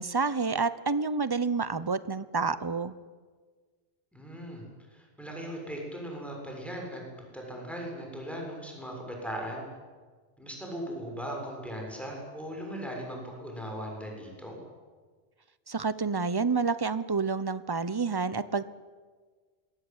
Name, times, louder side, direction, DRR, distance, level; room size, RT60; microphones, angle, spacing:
voice 1, 0.0-2.9 15.7-18.7, right 4 dB, 25° right, 15 dB, 0.9 m, -29 dB
voice 2, 4.1-4.6 4.9-9.6 10.4-14.6, equal, ahead, -1 dB, 7.1 m, -38 dB
25.5 x 21.5 x 9.1 m, 1.5 s
omnidirectional pair, 1.0 m